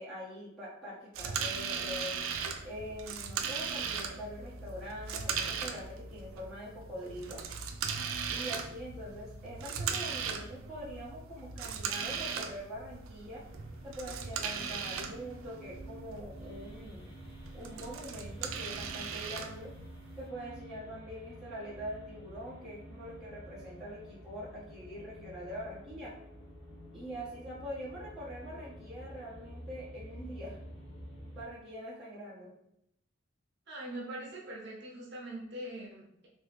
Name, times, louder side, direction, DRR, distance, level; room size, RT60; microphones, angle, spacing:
voice 1, 0.0-2.1 2.6-7.4 8.3-13.4 13.8-17.1 17.5-19.7 20.2-26.1 26.9-30.6 31.3-32.5, equal, ahead, -10 dB, 1.2 m, -43 dB
sound 1, 1.1-20.3, right 6 dB, 85° right, 0.4 m, -38 dB
sound 2, 13.4-31.4, equal, 25° left, 0.9 m, -49 dB
voice 2, 33.7-36.3, right 1 dB, 55° right, -3 dB, 0.9 m, -42 dB
3.1 x 3.1 x 3.4 m, 0.77 s
head